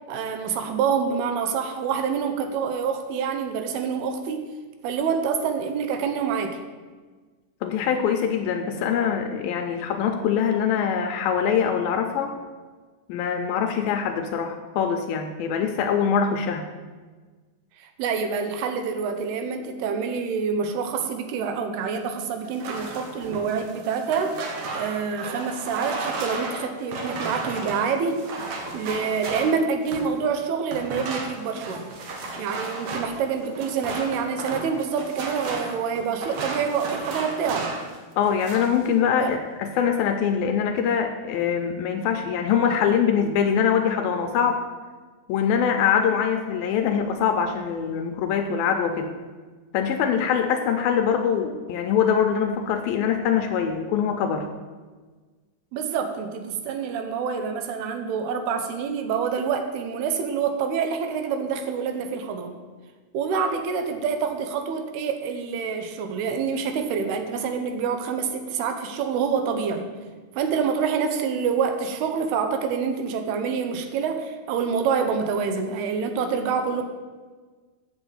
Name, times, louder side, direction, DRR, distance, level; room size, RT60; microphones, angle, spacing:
voice 1, 0.1-4.5 4.8-6.6 17.8-24.4 24.7-28.2 28.7-31.9 32.4-37.7 39.2-39.3 55.7-62.6 63.1-69.9 70.4-76.8, right 6 dB, 80° right, 6 dB, 2.8 m, -27 dB
voice 2, 7.6-12.3 13.1-16.7 38.2-44.6 45.3-49.1 49.7-54.5, left 7 dB, 80° left, 5 dB, 2.2 m, -23 dB
sound 1, 22.4-30.2 30.7-38.0 38.2-38.8, right 3 dB, 60° right, 2.0 m, -34 dB
7.9 x 6.6 x 7.7 m, 1.4 s
omnidirectional pair, 4.6 m